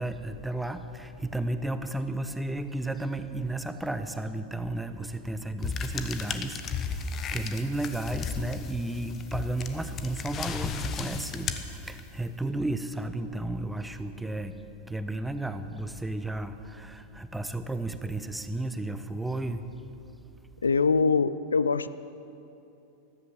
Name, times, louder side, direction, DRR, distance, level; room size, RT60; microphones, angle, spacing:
voice 1, 0.0-14.6 14.9-19.7, right 2 dB, 5° right, 10 dB, 0.8 m, -33 dB
sound 1, 5.6-12.3, left 6 dB, 30° left, 1.1 m, -35 dB
voice 2, 20.6-21.9, left 4 dB, 75° left, 15 dB, 0.4 m, -23 dB
14.0 x 13.5 x 7.3 m, 2.8 s
figure-of-eight pair, 90°, 0 cm